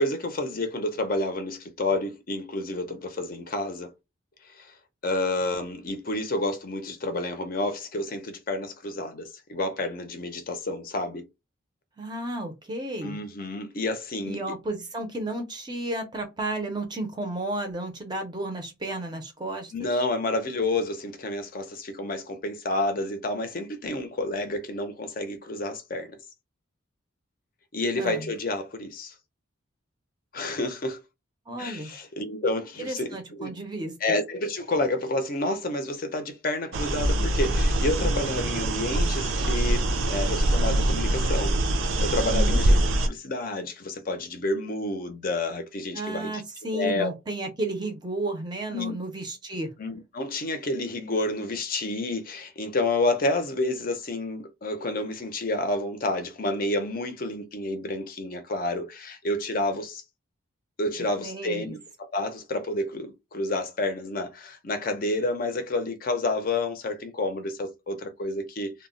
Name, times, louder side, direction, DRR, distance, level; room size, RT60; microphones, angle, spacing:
voice 1, 0.0-3.9 4.5-4.7 5.0-11.3 13.0-14.4 19.7-26.2 27.7-29.1 30.3-31.0 31.6-33.5 34.0-42.8 43.0-46.4 46.7-47.1 48.7-48.9 49.8-60.0 60.8-68.9, left 2 dB, 45° left, 0.5 m, -29 dB
voice 2, 12.0-13.2 14.3-20.0 28.0-28.3 31.5-31.9 32.8-34.0 42.3-42.6 45.9-49.7 61.2-61.8, right 1 dB, 20° right, 0.5 m, -33 dB
sound 1, 36.7-43.1, right 1 dB, 75° right, 0.5 m, -24 dB
2.2 x 2.0 x 3.6 m
head